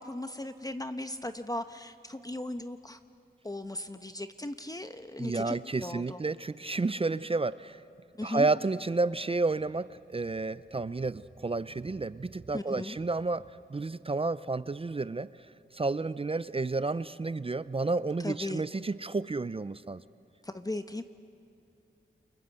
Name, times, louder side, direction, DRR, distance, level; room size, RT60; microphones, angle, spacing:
voice 1, 0.0-3.0 3.4-5.5 5.8-6.2 8.2-8.5 12.5-13.0 18.2-18.6 20.4-21.0, left 1 dB, 20° left, 8 dB, 1.0 m, -37 dB
voice 2, 5.2-7.8 8.2-15.3 15.7-20.0, right 3 dB, 30° right, 16 dB, 0.5 m, -31 dB
28.5 x 24.5 x 7.8 m, 2.5 s
cardioid pair, 55°, 20 cm